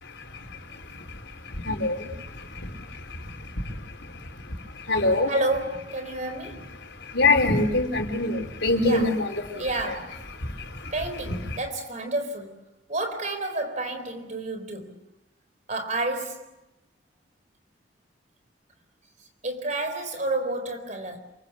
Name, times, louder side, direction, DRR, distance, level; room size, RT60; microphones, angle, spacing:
voice 1, 0.0-5.3 6.4-10.0 10.3-11.0 11.3-11.6, left 2 dB, 75° left, 4.4 m, -27 dB
voice 2, 5.3-6.6 8.8-9.1 9.6-10.2 10.9-12.6 12.9-15.0 15.7-16.5 19.4-21.2, right 2 dB, 40° right, 4.1 m, -30 dB
28.0 x 24.5 x 7.0 m
head